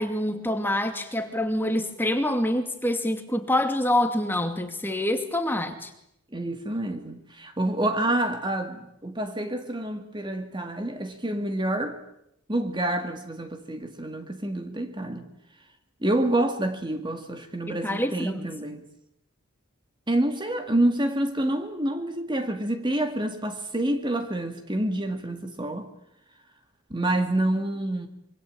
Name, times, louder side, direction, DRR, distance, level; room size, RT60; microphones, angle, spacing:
voice 1, 0.0-5.9 17.7-18.5, left 1 dB, 10° left, 2.4 m, -26 dB
voice 2, 6.3-12.0 12.5-15.3 16.0-18.8 20.1-25.9 26.9-28.1, right 1 dB, 20° right, 2.1 m, -27 dB
26.5 x 24.5 x 8.8 m
head